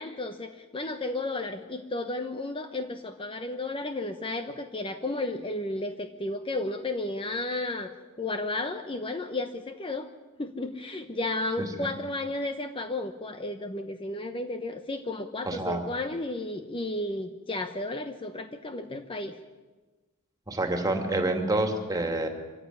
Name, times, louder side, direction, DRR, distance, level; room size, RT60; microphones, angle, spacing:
voice 1, 0.0-7.9 8.2-10.1 10.4-19.4, left 2 dB, 25° left, 7 dB, 1.0 m, -33 dB
voice 2, 11.6-11.9 15.5-15.9 20.5-22.3, right 2 dB, 15° right, 4 dB, 2.7 m, -28 dB
25.0 x 15.0 x 9.7 m, 1.3 s
head